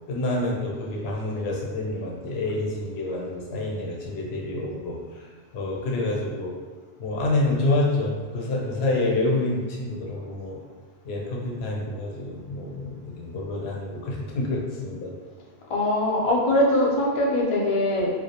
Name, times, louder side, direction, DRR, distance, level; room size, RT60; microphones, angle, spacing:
voice 1, 0.1-5.3 5.5-6.5 7.0-10.6 11.0-15.1, left 2 dB, 75° left, -2 dB, 0.8 m, -27 dB
voice 2, 15.7-18.1, left 1 dB, 55° left, -3 dB, 0.4 m, -22 dB
2.3 x 2.1 x 2.8 m, 1.4 s
omnidirectional pair, 1.1 m